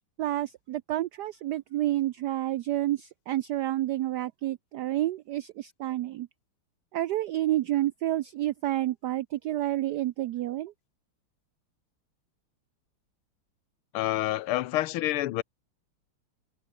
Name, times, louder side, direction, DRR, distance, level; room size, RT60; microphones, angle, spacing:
voice 1, 0.2-6.3 6.9-10.7, right 14 dB, 75° right, 0.9 m, -29 dB
voice 2, 13.9-15.4, left 15 dB, 80° left, 1.6 m, -28 dB
omnidirectional pair, 2.3 m